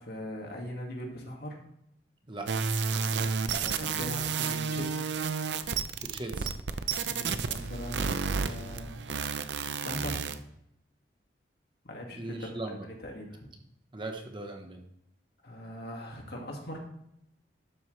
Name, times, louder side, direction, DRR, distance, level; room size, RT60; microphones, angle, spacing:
voice 1, 0.0-1.6 3.5-5.1 7.0-9.0 9.8-10.4 11.8-13.4 15.4-16.8, equal, 65° left, 1 dB, 2.2 m, -40 dB
sound 1, 2.5-10.4, right 5 dB, 85° right, 0.6 m, -31 dB
voice 2, 6.0-6.5 12.1-12.8 13.9-14.8, right 2 dB, 30° right, 4 dB, 1.2 m, -38 dB
12.0 x 7.9 x 3.3 m, 0.77 s
head